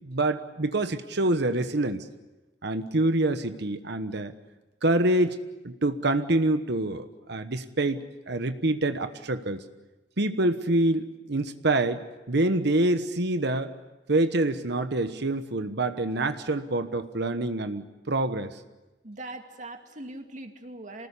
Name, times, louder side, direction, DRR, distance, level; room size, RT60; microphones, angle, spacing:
voice 1, 0.0-2.1 2.6-4.3 4.8-5.4 5.6-9.6 10.2-13.7 14.1-18.6, right 2 dB, 65° right, 9 dB, 1.2 m, -26 dB
voice 2, 19.0-21.1, right 2 dB, 45° right, 4 dB, 2.4 m, -41 dB
27.0 x 19.5 x 8.4 m, 1.1 s
head